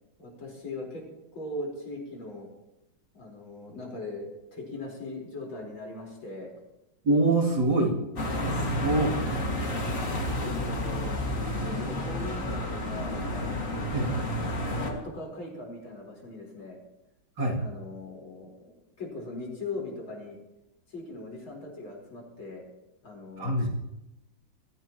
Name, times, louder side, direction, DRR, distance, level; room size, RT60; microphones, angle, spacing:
voice 1, 0.2-1.1 1.3-2.5 3.1-6.6 9.8-11.2 11.5-14.3 14.8-16.8 17.5-20.4 20.9-22.6 23.0-23.7, left 2 dB, 85° left, -1 dB, 5.1 m, -40 dB
voice 2, 7.0-7.9 8.7-9.2 13.9-14.1 17.4-17.6 23.4-23.7, right 2 dB, 60° right, -1 dB, 3.3 m, -24 dB
sound 1, 8.2-14.9, left 1 dB, 40° left, 2.4 m, -30 dB
23.0 x 15.0 x 3.0 m, 0.93 s
omnidirectional pair, 2.1 m